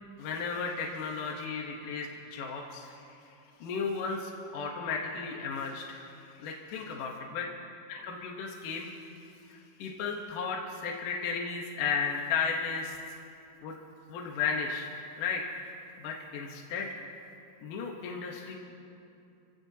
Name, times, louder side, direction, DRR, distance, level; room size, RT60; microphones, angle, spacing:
voice 1, 0.2-3.3 3.6-7.5 7.9-8.9 9.5-13.0 13.6-13.8 14.1-14.9 15.2-15.4 16.0-17.0 17.6-18.6, left 5 dB, 75° left, 0 dB, 2.6 m, -34 dB
28.5 x 16.5 x 2.8 m, 2.7 s
omnidirectional pair, 3.9 m